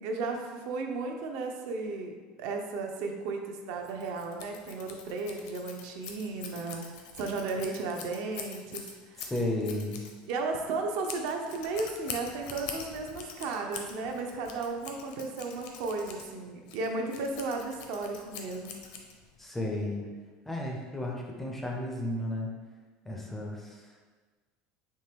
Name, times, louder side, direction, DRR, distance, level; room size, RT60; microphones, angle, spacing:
voice 1, 0.0-9.3 10.3-18.8, right 3 dB, 60° right, 3 dB, 0.5 m, -34 dB
Scissors, 3.8-19.4, left 6 dB, 60° left, 0.5 m, -45 dB
voice 2, 9.2-10.0 19.4-20.0 20.5-22.5 23.1-23.9, left 1 dB, 5° left, -1 dB, 0.4 m, -33 dB
4.4 x 2.8 x 3.4 m, 1.4 s
cardioid pair, 175°, 3 cm